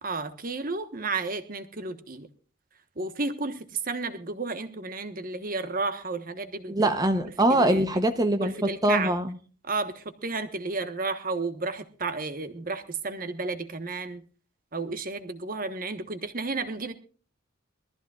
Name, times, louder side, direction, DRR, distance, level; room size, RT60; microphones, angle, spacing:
voice 1, 0.0-2.3 3.0-6.9 7.5-7.8 8.4-9.1 9.6-14.2 14.7-16.9, right 3 dB, 45° right, 10 dB, 1.2 m, -32 dB
voice 2, 6.7-9.4, right 1 dB, 20° right, 9 dB, 0.7 m, -23 dB
22.0 x 14.5 x 2.4 m, 0.39 s
head